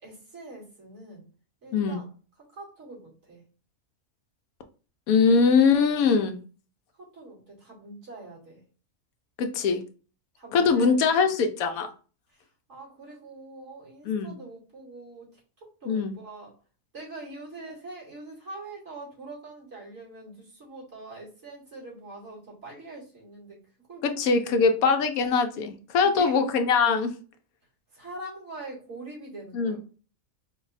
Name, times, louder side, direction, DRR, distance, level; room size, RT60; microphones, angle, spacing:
voice 1, 0.0-1.2 1.6-2.1 2.5-3.4 7.0-8.6 10.4-11.3 12.3-12.4 12.7-15.4 15.8-16.5 16.9-23.6 23.9-24.1 24.5-24.7 26.0-26.4 27.9-29.8, right 2 dB, 55° right, -5 dB, 2.8 m, -43 dB
voice 2, 5.1-6.4 9.4-9.8 10.5-11.9 14.1-14.3 15.9-16.1 24.0-27.1 29.5-29.8, left 5 dB, 85° left, 7 dB, 1.1 m, -22 dB
4.6 x 2.3 x 4.0 m, 0.37 s
omnidirectional pair, 1.5 m